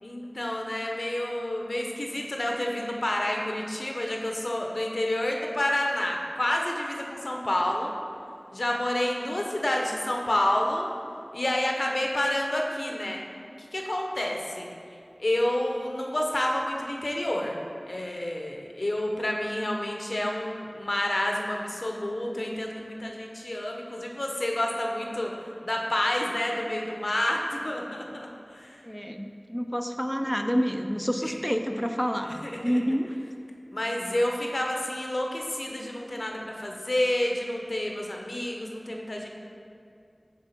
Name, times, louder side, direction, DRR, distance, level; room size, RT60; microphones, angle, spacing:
voice 1, 0.0-7.9 8.5-10.9 11.3-13.2 13.6-14.7 15.2-17.6 17.9-25.3 25.6-28.8 31.2-31.3 32.2-32.8 33.7-39.3, left 1 dB, 80° left, 0 dB, 0.7 m, -29 dB
voice 2, 28.8-33.2, equal, ahead, 5 dB, 0.4 m, -28 dB
6.9 x 3.6 x 5.7 m, 2.4 s
wide cardioid pair, 45°, 0 cm